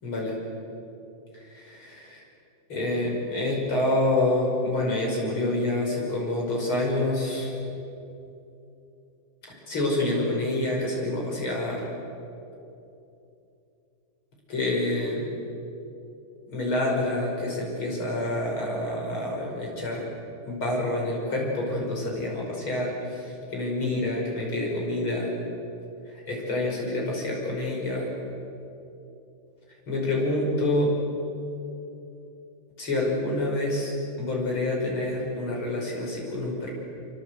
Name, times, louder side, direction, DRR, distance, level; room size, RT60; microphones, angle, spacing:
voice 1, 0.0-0.3 1.3-2.2 2.7-7.5 9.5-11.8 14.5-15.3 16.5-20.0 20.5-25.3 26.3-28.1 29.9-31.0 32.8-33.9 34.2-36.7, left 1 dB, 75° left, -2 dB, 6.5 m, -27 dB
26.5 x 24.0 x 8.0 m, 2.8 s
omnidirectional pair, 2.3 m